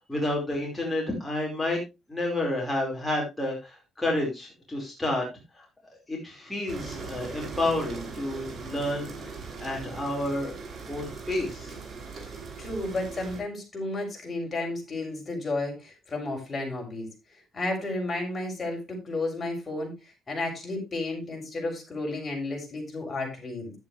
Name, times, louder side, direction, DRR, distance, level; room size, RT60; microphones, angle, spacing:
voice 1, 0.0-1.8 2.1-5.2 5.5-5.7 6.1-10.5 10.9-11.8, left 1 dB, 5° left, -2 dB, 4.9 m, -30 dB
sound 1, 6.7-13.4, right 4 dB, 45° right, 7.7 m, -40 dB
voice 2, 12.6-17.1 17.5-23.7, left 2 dB, 30° left, 0 dB, 7.0 m, -32 dB
12.0 x 10.5 x 3.3 m, 0.26 s
cardioid pair, 90°, 0 cm